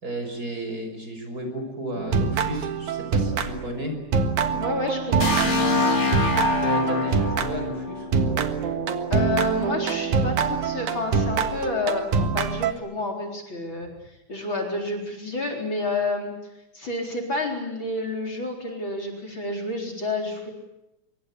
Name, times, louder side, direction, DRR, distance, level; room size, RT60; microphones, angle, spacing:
voice 1, 0.0-3.9 6.6-8.4, right 1 dB, 30° right, 5 dB, 6.1 m, -33 dB
sound 1, 2.0-3.9 4.1-7.7 8.1-12.7, right 6 dB, 85° right, 3.1 m, -25 dB
voice 2, 4.5-5.3 9.1-16.3 16.7-20.5, left 3 dB, 40° left, 1 dB, 4.7 m, -29 dB
sound 2, 5.2-9.0, left 3 dB, 20° left, 3.4 m, -25 dB
26.0 x 24.0 x 8.5 m, 0.93 s
omnidirectional pair, 3.3 m